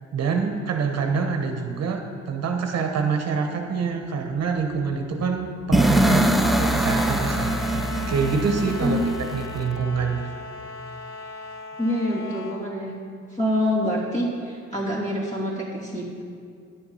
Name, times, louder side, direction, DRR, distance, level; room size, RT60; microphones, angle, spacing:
voice 1, 0.1-6.2 6.6-10.2, right 5 dB, 55° right, 4 dB, 1.0 m, -26 dB
sound 1, 3.8-9.9, left 2 dB, 80° left, 2.6 m, -41 dB
sound 2, 5.7-9.6, right 1 dB, ahead, 0.5 m, -23 dB
voice 2, 5.9-6.2 8.8-9.0 11.8-12.9 13.3-16.2, equal, 25° left, -5 dB, 2.9 m, -26 dB
sound 3, 6.4-12.6, left 3 dB, 60° left, 1.0 m, -37 dB
10.5 x 7.1 x 5.4 m, 2.3 s
cardioid pair, 90°, 30 cm